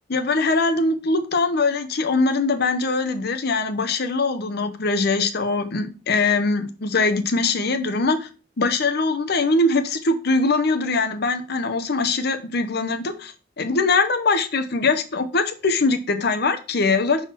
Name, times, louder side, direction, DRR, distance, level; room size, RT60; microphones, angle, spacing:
voice 1, 0.1-8.3 8.6-17.2, left 3 dB, 60° left, 8 dB, 0.9 m, -22 dB
5.8 x 4.0 x 4.5 m, 0.34 s
head